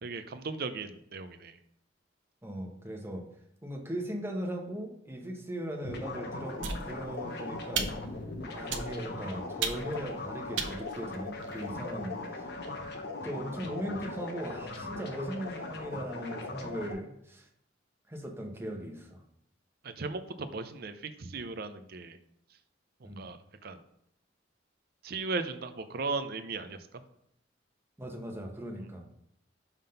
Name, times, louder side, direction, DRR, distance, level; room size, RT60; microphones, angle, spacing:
voice 1, 0.0-1.6 19.8-22.2 23.0-23.8 25.0-26.8, right 3 dB, 55° right, 10 dB, 0.5 m, -37 dB
voice 2, 2.4-3.2 3.6-7.9 8.5-12.5 13.2-17.5 18.1-19.2 23.0-23.3 28.0-29.0, right 1 dB, 15° right, 1 dB, 1.0 m, -38 dB
sound 1, 5.8-16.9, left 2 dB, 60° left, 0.9 m, -39 dB
sound 2, 6.6-7.2 7.7-8.2 8.7-9.2 9.6-10.1 10.6-11.7, right 6 dB, 90° right, 0.7 m, -36 dB
5.6 x 3.6 x 5.5 m, 0.72 s
head